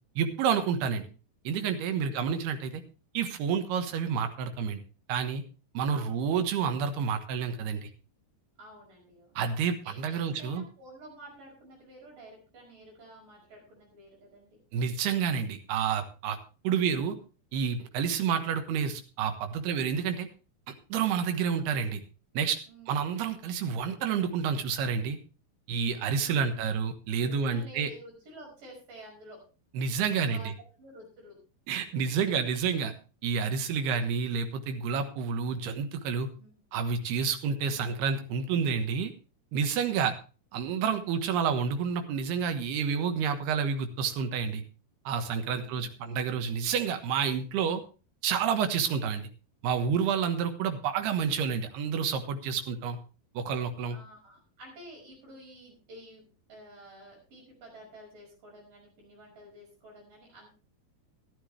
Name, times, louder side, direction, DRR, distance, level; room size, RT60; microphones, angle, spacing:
voice 1, 0.2-1.0 1.4-2.8 3.1-4.8 5.1-5.4 5.7-7.9 9.4-10.6 14.7-16.4 16.6-17.2 17.5-20.3 20.7-22.0 22.3-22.6 22.9-25.2 25.7-27.9 29.7-30.4 31.7-32.9 33.2-36.3 36.7-39.1 39.5-40.1 40.5-44.6 45.1-47.8 48.2-49.3 49.6-53.0 53.3-54.0, right 6 dB, 80° right, 7 dB, 3.3 m, -29 dB
voice 2, 5.9-6.2 8.6-9.4 9.8-14.6 22.7-23.3 27.2-29.4 30.2-30.5 30.8-31.4 36.3-36.6 45.4-46.0 53.9-60.5, right 1 dB, 55° right, -1 dB, 7.1 m, -51 dB
14.0 x 12.0 x 3.3 m, 0.33 s
omnidirectional pair, 4.6 m